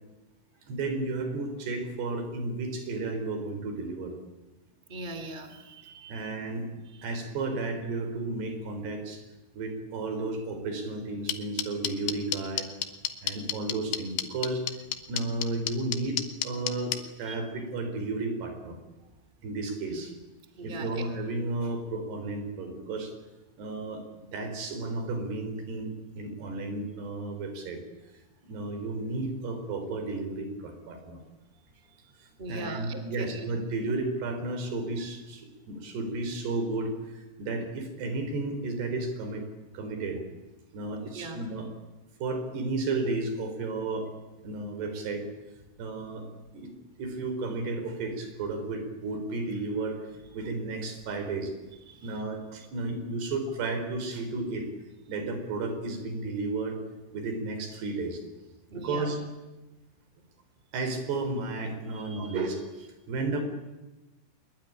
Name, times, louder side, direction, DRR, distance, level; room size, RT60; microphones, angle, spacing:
voice 1, 0.7-4.1 6.1-6.7 7.0-9.2 9.5-12.7 13.2-14.6 15.1-16.9 17.2-18.8 19.4-20.1 20.6-23.1 23.6-27.8 28.4-31.2 32.5-39.5 39.7-40.2 40.7-41.7 42.2-44.1 44.4-45.3 45.8-46.3 46.5-46.7 47.0-50.0 50.3-51.5 52.0-54.7 55.1-56.8 57.1-58.2 58.7-59.2 60.7-63.4, right 3 dB, 85° right, 7 dB, 5.9 m, -33 dB
voice 2, 4.9-6.3 13.3-13.4 17.2-17.4 19.9-20.0 20.4-21.0 32.4-33.5 41.1-41.4 51.9-52.2 58.7-59.1 61.9-62.4, right 2 dB, 15° right, 8 dB, 2.7 m, -41 dB
sound 1, 11.3-17.0, left 11 dB, 80° left, 3.5 m, -29 dB
24.5 x 21.5 x 10.0 m, 1.1 s
omnidirectional pair, 4.6 m